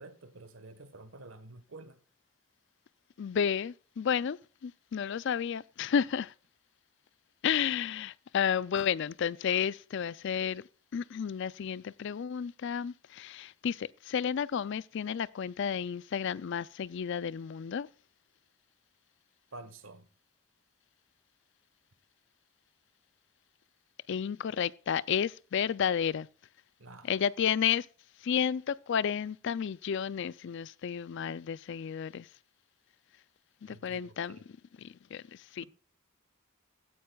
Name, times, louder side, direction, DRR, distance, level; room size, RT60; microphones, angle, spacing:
voice 1, 0.0-2.0 19.5-20.1 26.8-27.2 33.7-34.4, right 2 dB, 65° right, 1.4 m, -49 dB
voice 2, 3.2-6.3 7.4-10.6 10.9-17.9 24.1-26.3 27.1-27.9 28.2-32.3 33.6-34.4 34.8-35.6, left 8 dB, 55° left, 0.4 m, -32 dB
15.5 x 10.0 x 2.3 m
head